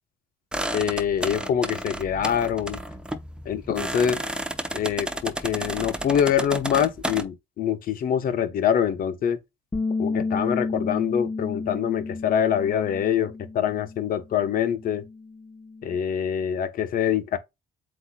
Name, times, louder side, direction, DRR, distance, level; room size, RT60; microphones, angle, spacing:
sound 1, 0.5-7.2, right 1 dB, 5° right, 0.7 m, -32 dB
voice 1, 0.7-2.8 3.4-4.2 4.7-9.4 10.0-15.0 15.8-17.4, left 9 dB, 55° left, 1.0 m, -25 dB
Bass guitar, 9.7-14.1 14.4-16.0, left 3 dB, 15° left, 1.0 m, -32 dB
7.8 x 2.9 x 2.2 m
cardioid pair, 110°, 17 cm